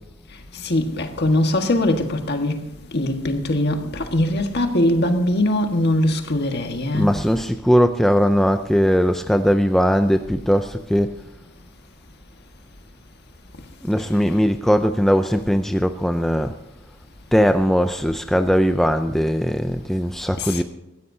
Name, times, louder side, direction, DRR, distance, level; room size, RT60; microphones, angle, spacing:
voice 1, 0.6-2.6 2.9-7.1 20.4-20.6, left 1 dB, 50° left, 1.6 m, -21 dB
voice 2, 6.9-11.1 13.8-16.5 17.3-20.6, equal, ahead, 0.4 m, -19 dB
20.5 x 15.5 x 2.8 m
head